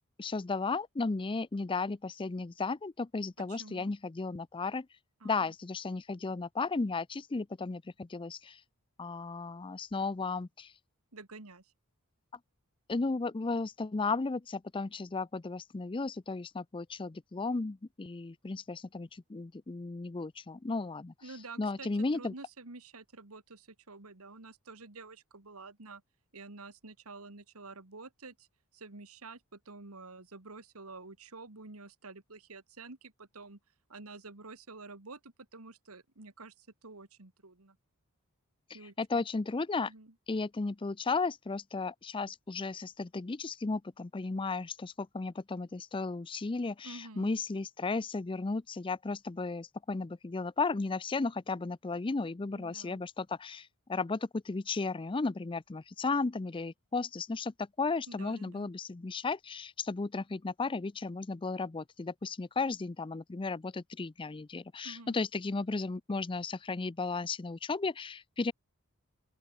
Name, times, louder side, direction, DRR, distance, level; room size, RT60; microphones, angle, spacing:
voice 1, 0.2-4.9 5.2-8.6 9.0-10.7 12.9-21.1 21.6-22.3 38.7-39.9 40.3-68.5, left 3 dB, 20° left, 0.5 m, -34 dB
voice 2, 3.4-3.9 5.2-5.5 11.1-11.7 21.2-26.0 26.3-28.5 28.7-33.6 33.9-37.8 38.7-39.3 39.8-40.1 46.8-47.3 52.5-53.0 58.1-58.7 64.8-65.2, right 3 dB, 75° right, 2.2 m, -49 dB
open air
head